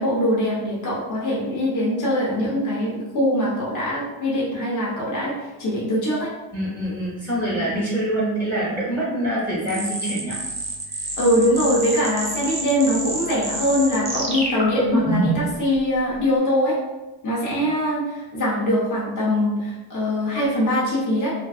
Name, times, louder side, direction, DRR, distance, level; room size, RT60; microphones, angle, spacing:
voice 1, 0.0-6.3 11.2-16.8 17.2-21.3, equal, 40° left, -6 dB, 0.9 m, -22 dB
voice 2, 6.5-10.4 10.9-11.1 17.5-17.7, right 1 dB, 5° left, -8 dB, 0.8 m, -25 dB
sound 1, 9.7-15.5, right 2 dB, 15° right, 0.4 m, -27 dB
2.5 x 2.4 x 2.4 m, 1.1 s
cardioid pair, 90°, 49 cm